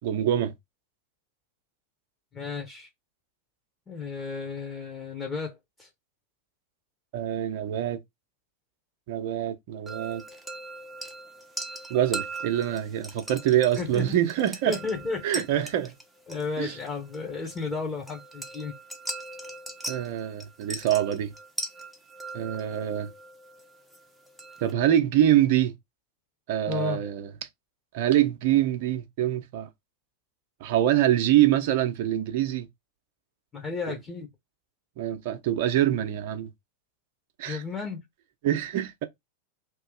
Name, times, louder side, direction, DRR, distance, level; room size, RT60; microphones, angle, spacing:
voice 1, 0.0-0.5 7.1-8.0 9.1-10.2 11.9-14.8 15.2-16.0 16.6-16.8 19.9-21.3 22.3-23.1 24.6-25.7 26.5-27.3 27.9-29.7 30.6-32.7 33.9-34.0 35.0-36.5 37.4-37.6 38.4-39.0, right 12 dB, 50° right, 0.7 m, -25 dB
voice 2, 2.3-2.9 3.9-5.9 13.8-14.2 14.7-15.4 16.3-18.7 26.7-27.0 33.5-34.3 37.4-38.0, left 4 dB, 20° left, 1.2 m, -33 dB
sound 1, 9.9-24.7, right 2 dB, ahead, 0.8 m, -40 dB
3.0 x 2.7 x 3.8 m
figure-of-eight pair, 90°, 0 cm